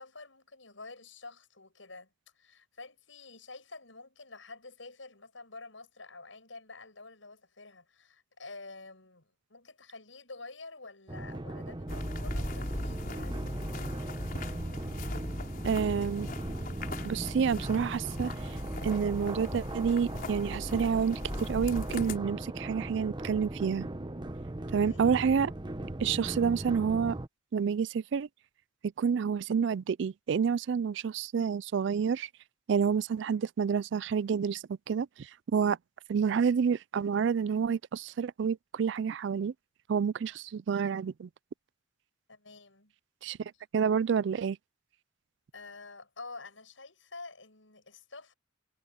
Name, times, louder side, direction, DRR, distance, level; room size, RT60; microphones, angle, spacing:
voice 1, 0.0-13.6 13.8-14.0 24.8-25.1 42.3-42.9 43.5-43.6 45.5-48.3, left 3 dB, 85° left, 7.2 m, -49 dB
sound 1, 11.1-27.3, right 1 dB, 25° right, 0.9 m, -39 dB
sound 2, 11.9-22.2, left 1 dB, 50° left, 4.9 m, -39 dB
voice 2, 15.6-16.3 17.0-18.3 18.8-23.9 24.7-25.5 26.0-27.2 27.5-28.3 29.0-32.3 32.7-35.8 36.1-39.5 39.9-41.3 43.2-44.6, right 6 dB, 65° right, 0.4 m, -29 dB
head